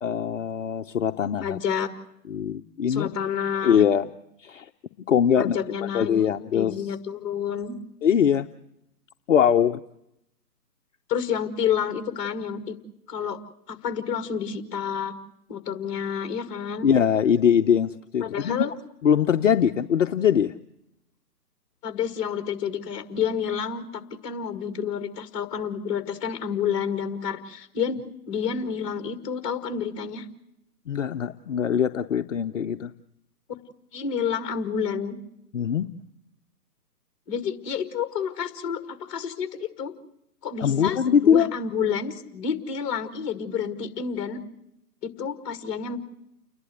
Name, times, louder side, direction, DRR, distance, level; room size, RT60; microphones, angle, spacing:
voice 1, 0.0-1.6 2.3-3.1 3.6-4.1 4.4-4.7 5.1-5.6 5.9-6.8 8.0-8.5 9.3-9.8 16.8-18.6 19.0-20.5 30.9-32.9 35.5-35.9 40.6-41.5, left 8 dB, 50° left, 7 dB, 0.8 m, -22 dB
voice 2, 1.4-1.9 2.9-3.8 5.4-7.7 11.1-12.8 13.1-13.4 13.7-15.1 15.5-16.9 18.2-18.7 21.8-28.0 28.3-30.3 33.9-35.2 37.3-39.9 40.4-44.4 45.0-46.0, left 7 dB, 20° left, 8 dB, 2.0 m, -29 dB
30.0 x 11.5 x 8.0 m, 0.82 s
hypercardioid pair, 145°, 49 cm